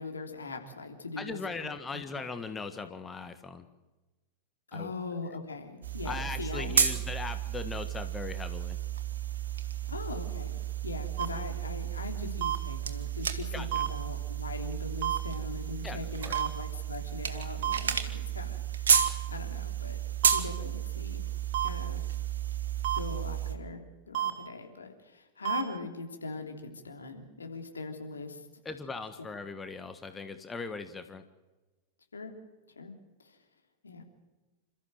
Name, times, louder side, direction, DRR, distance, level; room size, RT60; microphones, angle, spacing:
voice 1, 0.0-2.0 4.7-6.9 9.9-10.5 10.8-20.0 20.3-21.2 21.6-22.0 22.9-23.8 24.1-28.4 32.1-32.3 32.7-33.4 33.8-34.0, left 3 dB, 75° left, 4 dB, 3.2 m, -41 dB
voice 2, 1.2-3.6 4.7-4.9 6.0-8.8 13.5-13.7 15.8-16.4 28.6-31.2, left 4 dB, 15° left, 9 dB, 1.5 m, -39 dB
sound 1, 5.8-23.5, right 8 dB, 65° right, 2.0 m, -32 dB
sound 2, 11.2-11.3 12.4-12.6 13.7-13.9 15.0-15.2 16.3-16.5 17.6-17.8 18.9-19.1 20.2-20.4 21.5-21.7 22.8-23.0 24.1-24.3 25.4-25.6, right 12 dB, 45° right, 3.1 m, -29 dB
28.5 x 14.0 x 7.8 m, 1.2 s
figure-of-eight pair, 95°, 0 cm